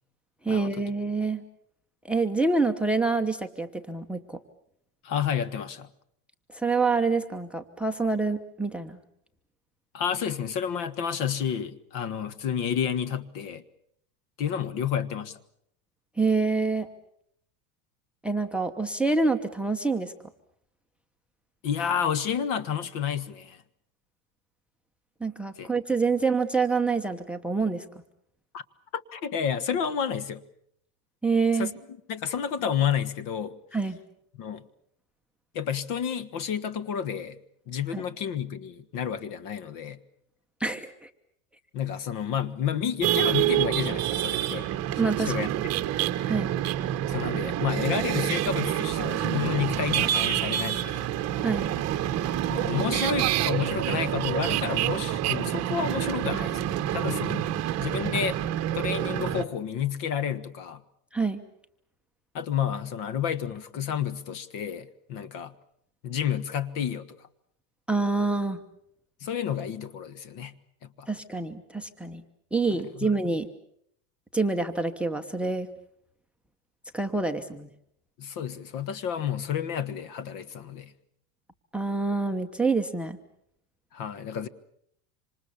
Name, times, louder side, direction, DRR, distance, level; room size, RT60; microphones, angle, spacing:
voice 1, 0.4-1.4 2.0-4.4 6.5-9.0 16.2-16.9 18.2-20.1 25.2-27.8 31.2-31.7 33.7-34.0 37.9-38.0 40.6-41.1 45.0-45.3 46.3-46.5 51.4-51.7 61.1-61.4 67.9-68.6 71.1-72.2 72.5-73.5 74.3-75.7 76.9-77.7 81.7-83.2, right 4 dB, ahead, 10 dB, 1.0 m, -26 dB
voice 2, 5.0-5.9 9.9-13.6 14.4-15.4 21.6-23.6 25.6-25.7 28.5-28.6 28.9-30.4 31.5-31.7 32.1-33.5 34.4-34.6 35.5-37.4 37.7-40.0 41.7-44.7 45.2-45.5 47.1-51.1 52.5-57.5 57.8-58.4 58.7-60.8 62.3-65.5 66.0-67.1 69.2-70.5 70.8-71.1 73.0-73.1 78.2-80.9 83.9-84.5, left 8 dB, 45° left, 15 dB, 1.5 m, -30 dB
sound 1, 43.0-59.4, right 12 dB, 35° right, 1.4 m, -27 dB
26.5 x 26.5 x 7.1 m, 0.71 s
supercardioid pair, 150°, 47 cm